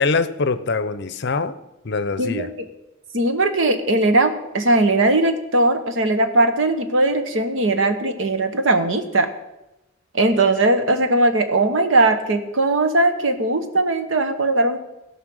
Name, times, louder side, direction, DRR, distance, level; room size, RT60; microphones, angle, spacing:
voice 1, 0.0-1.6 1.8-2.5, left 4 dB, 55° left, 13 dB, 0.6 m, -23 dB
voice 2, 3.1-9.3 10.1-14.8, right 2 dB, 70° right, 8 dB, 1.2 m, -19 dB
16.5 x 5.6 x 6.3 m, 0.95 s
head